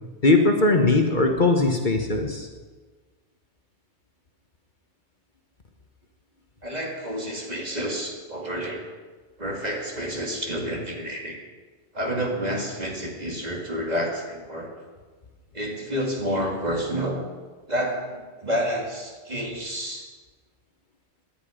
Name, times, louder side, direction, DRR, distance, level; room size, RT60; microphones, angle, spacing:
voice 1, 0.2-2.5, left 3 dB, 45° left, 4 dB, 1.3 m, -20 dB
voice 2, 6.6-8.9 9.4-11.4 11.9-14.7 15.5-17.2 17.7-20.0, equal, 35° right, 0 dB, 2.4 m, -29 dB
19.0 x 10.5 x 5.1 m, 1.4 s
omnidirectional pair, 1.2 m